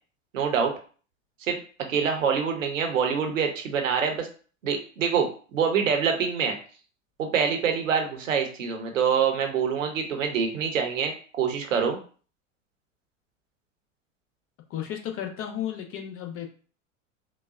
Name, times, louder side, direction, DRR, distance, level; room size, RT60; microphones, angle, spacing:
voice 1, 0.3-0.7 1.4-1.6 1.9-4.3 4.6-6.6 7.2-12.0, right 6 dB, 80° right, 4 dB, 1.0 m, -25 dB
voice 2, 14.7-16.5, left 10 dB, 35° left, 3 dB, 0.9 m, -33 dB
3.9 x 2.2 x 2.4 m, 0.39 s
hypercardioid pair, 90°, 39 cm